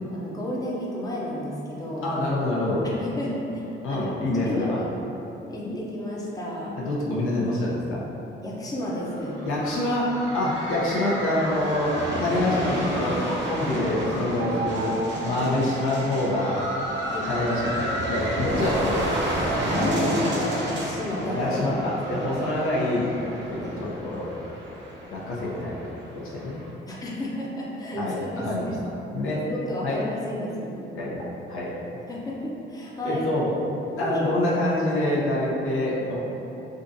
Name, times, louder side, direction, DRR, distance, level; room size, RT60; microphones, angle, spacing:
voice 1, 0.1-2.1 3.0-4.1 4.4-4.9 5.5-6.8 8.4-9.4 15.3-15.5 17.1-17.3 19.7-21.4 21.7-22.3 23.6-23.8 26.9-28.7 29.5-30.8 32.1-33.2 34.0-34.2, left 1 dB, 15° left, -5 dB, 0.6 m, -32 dB
voice 2, 2.0-2.9 3.8-4.8 5.7-5.8 6.8-8.0 9.4-14.9 15.2-16.6 17.3-19.0 19.7-20.3 21.3-24.3 25.1-26.6 28.0-28.7 29.1-29.5 29.8-30.0 30.9-31.2 31.5-31.7 33.0-36.2, left 1 dB, 75° left, -5 dB, 0.7 m, -26 dB
sound 1, 9.0-26.7, right 1 dB, 60° right, 0.7 m, -31 dB
sound 2, 14.4-21.1 22.0-22.7, right 3 dB, 30° right, 0.4 m, -36 dB
3.6 x 2.5 x 2.6 m, 3.0 s
cardioid pair, 90°, 21 cm